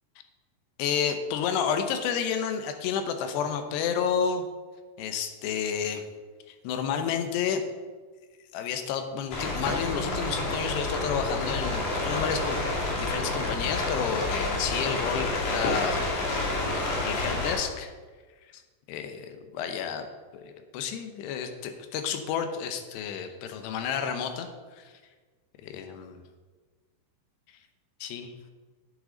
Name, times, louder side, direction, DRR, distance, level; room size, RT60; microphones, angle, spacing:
voice 1, 0.8-4.4 5.0-6.0 6.5-7.6 8.5-12.6 12.8-17.9 18.5-18.6 18.9-20.1 20.3-24.9 25.6-26.2 28.0-28.3, left 7 dB, 80° left, 7 dB, 2.9 m, -31 dB
sound 1, 9.3-17.5, left 2 dB, 55° left, 3.5 m, -29 dB
11.5 x 8.6 x 3.9 m, 1.4 s
omnidirectional pair, 5.0 m